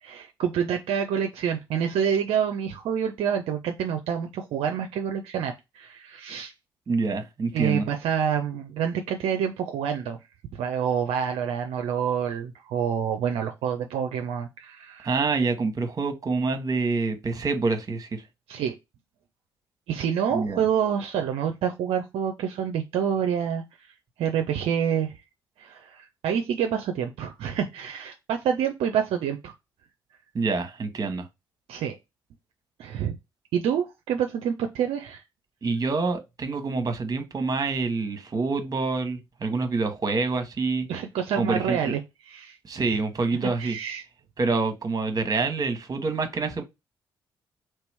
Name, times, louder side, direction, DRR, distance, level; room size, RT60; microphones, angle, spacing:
voice 1, 0.0-6.5 7.5-10.2 10.5-15.2 18.5-18.7 19.9-23.9 24.2-25.2 25.6-29.5 31.7-32.0 32.8-33.2 33.5-35.2 40.9-42.0 42.3-42.6 43.6-44.0, right 8 dB, 60° right, 0.5 m, -27 dB
voice 2, 6.9-7.9 15.0-18.2 20.3-20.6 30.3-31.3 35.6-40.9 41.4-41.9 42.6-43.8 44.4-46.6, right 3 dB, 35° right, 1.0 m, -26 dB
3.1 x 2.9 x 3.3 m
figure-of-eight pair, 40°, 11 cm